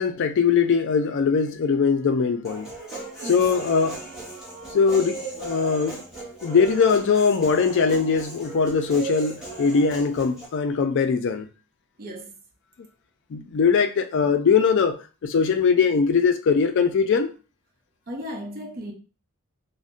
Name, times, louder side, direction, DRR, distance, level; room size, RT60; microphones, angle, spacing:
voice 1, 0.0-2.7 3.3-4.0 4.7-6.0 6.4-11.5 13.3-15.0 15.2-17.3, left 5 dB, 55° left, 0.4 m, -21 dB
Human voice, 2.4-10.5, right 3 dB, ahead, 1.0 m, -37 dB
voice 2, 3.2-3.6 12.0-12.3 18.1-18.9, equal, 45° right, 0.7 m, -35 dB
2.5 x 2.1 x 3.6 m
head